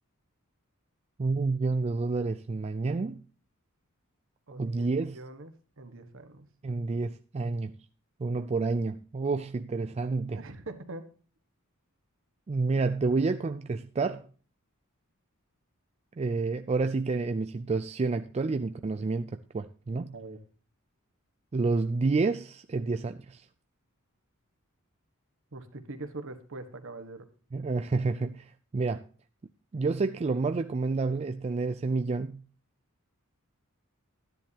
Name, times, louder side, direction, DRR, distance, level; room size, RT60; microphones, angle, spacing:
voice 1, 1.2-3.2 4.6-5.2 6.6-7.8 8.2-10.4 12.5-14.2 16.2-20.1 21.5-23.4 27.5-29.0 29.7-32.4, right 3 dB, 30° right, 0.4 m, -29 dB
voice 2, 4.5-6.5 10.3-11.1 20.1-20.4 25.5-27.3, right 2 dB, 65° right, 1.3 m, -43 dB
12.5 x 10.5 x 2.8 m
head